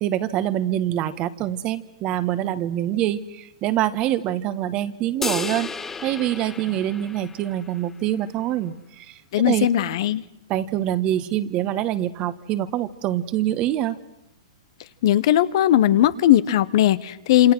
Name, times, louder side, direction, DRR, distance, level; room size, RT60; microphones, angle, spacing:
voice 1, 0.0-5.7 6.0-9.2 9.5-9.7 10.5-14.0, right 12 dB, 35° right, 13 dB, 1.4 m, -25 dB
sound 1, 5.2-7.8, left 4 dB, 10° left, 0.9 m, -32 dB
voice 2, 9.3-10.2 15.0-17.5, left 12 dB, 55° left, 15 dB, 1.1 m, -18 dB
27.5 x 27.5 x 6.3 m, 0.90 s
hypercardioid pair, 125°, 3 cm